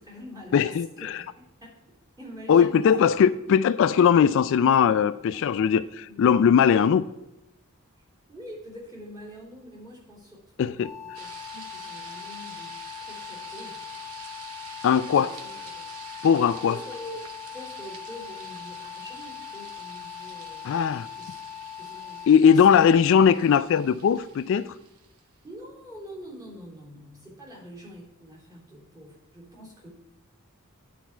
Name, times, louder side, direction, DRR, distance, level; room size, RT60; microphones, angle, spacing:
voice 1, 0.0-1.8 2.2-3.2 5.3-5.4 6.1-6.2 8.3-12.7 13.0-13.9 15.1-15.6 16.6-17.3 17.5-21.4 21.8-23.0 25.4-29.9, equal, 20° right, 3.3 m, -45 dB
voice 2, 0.5-0.9 2.5-7.0 10.6-10.9 14.8-15.3 16.2-16.8 20.6-21.1 22.3-24.7, left 7 dB, 60° left, 0.3 m, -19 dB
sound 1, 10.8-22.3, left 10 dB, 5° right, 1.5 m, -41 dB
sound 2, 11.1-25.2, right 5 dB, 85° right, 1.0 m, -47 dB
10.0 x 4.6 x 7.2 m
head